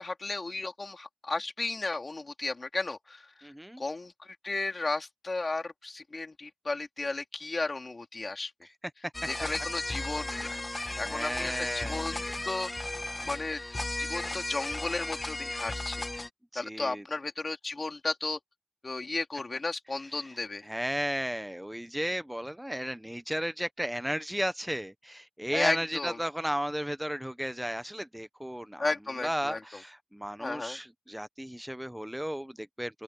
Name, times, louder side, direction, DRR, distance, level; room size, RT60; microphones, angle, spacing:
voice 1, 0.0-3.5 3.8-8.5 9.3-12.9 13.3-13.6 14.0-16.1 16.6-18.4 18.8-20.7 25.5-26.2 28.8-29.6 30.4-30.8, left 3 dB, 70° left, 3.5 m, -34 dB
voice 2, 3.4-3.8 11.0-12.0 16.5-17.0 20.7-28.9 29.2-33.0, equal, 10° right, 0.8 m, -34 dB
sound 1, 9.1-16.3, left 2 dB, 40° left, 1.4 m, -35 dB
open air
wide cardioid pair, 50°, 0 cm